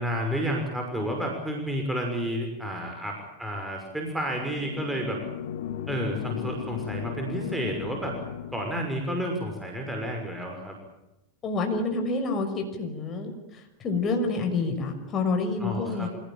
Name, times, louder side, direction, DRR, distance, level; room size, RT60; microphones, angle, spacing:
voice 1, 0.0-5.2 5.9-8.1 8.5-10.8 15.6-16.1, equal, 5° right, 1 dB, 6.0 m, -31 dB
sound 1, 4.3-9.2, left 9 dB, 70° left, 2.1 m, -36 dB
voice 2, 11.4-16.1, left 3 dB, 35° left, 4 dB, 6.1 m, -28 dB
27.0 x 18.5 x 9.0 m, 0.92 s
hypercardioid pair, 95°, 0 cm